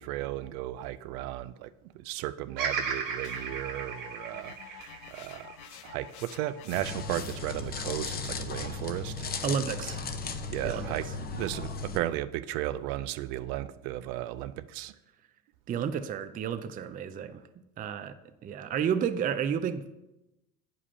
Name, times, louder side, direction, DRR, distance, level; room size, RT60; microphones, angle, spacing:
voice 1, 0.0-1.7 1.9-5.5 5.8-9.3 10.5-14.9, right 14 dB, 70° right, 0.6 m, -35 dB
Bird vocalization bird call bird song, 2.6-6.8 7.3-8.1, right 5 dB, 50° right, 1.5 m, -36 dB
sound 1, 3.2-7.6, left 12 dB, 85° left, 0.7 m, -49 dB
sound 2, 6.7-12.0, left 4 dB, 20° left, 0.7 m, -36 dB
voice 2, 9.4-10.0 10.6-11.0 15.7-17.4 17.8-18.2 18.4-19.9, right 7 dB, 20° right, 0.4 m, -31 dB
8.4 x 5.2 x 5.5 m
supercardioid pair, 100°, 44 cm